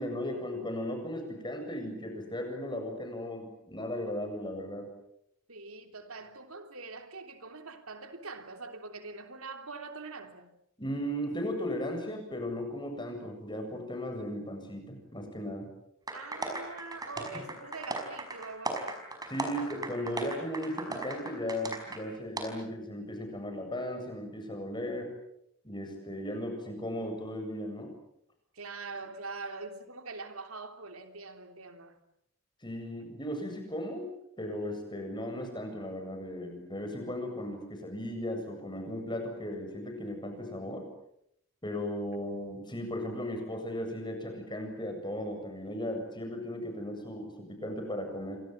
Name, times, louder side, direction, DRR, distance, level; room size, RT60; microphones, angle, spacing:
voice 1, 0.0-4.9 10.8-15.7 17.3-17.4 19.3-25.1 25.6-27.9 32.6-34.1 34.4-40.9 41.6-48.4, equal, 20° left, 7.7 m, -36 dB
voice 2, 5.5-10.5 16.1-19.0 28.5-32.0, right 3 dB, 90° right, 3.2 m, -43 dB
sound 1, 16.1-22.0 22.4-22.5, right 2 dB, 20° right, 5.5 m, -37 dB
29.0 x 25.5 x 7.5 m
head